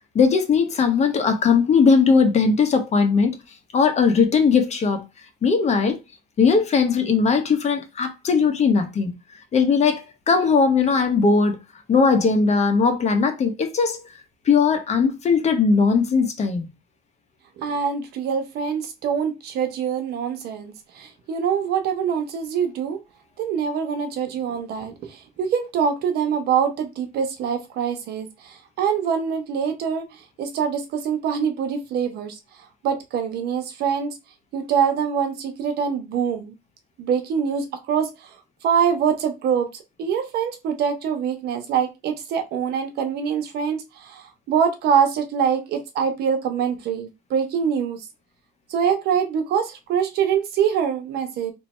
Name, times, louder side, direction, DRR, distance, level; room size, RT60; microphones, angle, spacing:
voice 1, 0.1-3.4 3.7-5.0 5.4-6.0 6.4-9.1 9.5-11.6 11.9-14.0 14.5-16.6, left 5 dB, 40° left, 1.0 m, -19 dB
voice 2, 17.6-23.0 23.4-32.4 32.8-34.2 34.5-36.5 37.0-38.3 38.6-39.7 40.0-48.1 48.7-51.5, right 7 dB, 75° right, 1.0 m, -24 dB
3.0 x 2.7 x 4.2 m
cardioid pair, 110°, 17 cm